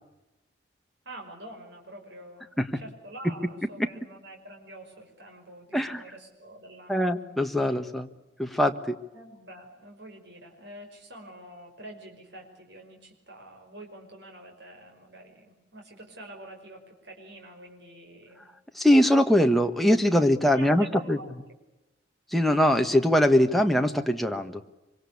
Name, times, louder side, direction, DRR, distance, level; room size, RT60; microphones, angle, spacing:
voice 1, 1.1-7.1 9.1-18.5 20.5-21.3, right 1 dB, 65° right, 2 dB, 5.5 m, -46 dB
voice 2, 5.7-6.0 6.9-8.1 8.4-9.0 18.7-21.2 22.3-24.6, left 1 dB, ahead, 4 dB, 1.4 m, -22 dB
25.0 x 24.5 x 8.5 m, 0.97 s
head